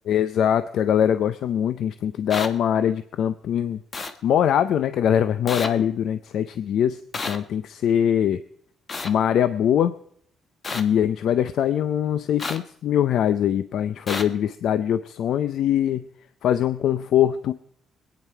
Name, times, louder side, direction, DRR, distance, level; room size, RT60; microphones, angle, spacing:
voice 1, 0.1-3.8 4.2-7.0 7.3-8.4 9.0-9.9 10.7-16.0 16.4-17.5, left 9 dB, 75° left, 13 dB, 0.5 m, -22 dB
sound 1, 2.3-2.5 3.9-4.1 5.5-5.7 7.1-7.4 8.9-9.1 10.6-10.8 12.4-12.6 14.1-14.2, left 3 dB, 40° left, 1.2 m, -29 dB
21.5 x 9.4 x 4.5 m, 0.65 s
cardioid pair, 90°, 0 cm